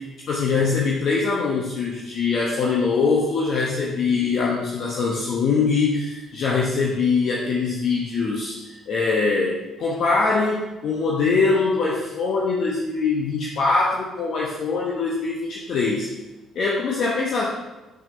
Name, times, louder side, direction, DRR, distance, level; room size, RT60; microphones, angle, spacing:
voice 1, 0.3-16.1 16.5-17.4, left 4 dB, 50° left, -3 dB, 1.0 m, -23 dB
8.4 x 6.0 x 3.3 m, 1.1 s
figure-of-eight pair, 45°, 0 cm